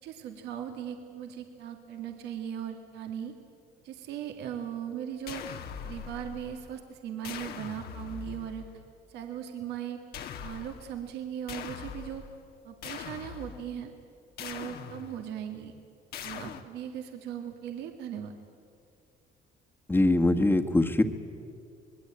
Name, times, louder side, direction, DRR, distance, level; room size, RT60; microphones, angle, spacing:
voice 1, 0.0-3.3 3.8-5.6 5.8-8.6 9.1-10.0 10.4-12.2 12.6-13.9 14.4-15.7 16.2-18.3, right 9 dB, 80° right, 4 dB, 2.0 m, -38 dB
sound 1, 5.3-6.8 7.2-8.8 10.1-11.1 11.5-12.4 12.8-13.8 14.4-15.4 16.1-16.6, left 8 dB, 70° left, 1.6 m, -42 dB
voice 2, 19.9-21.0, left 2 dB, 10° left, 5 dB, 1.5 m, -22 dB
25.5 x 20.5 x 8.8 m, 2.4 s
cardioid pair, 110°, 17 cm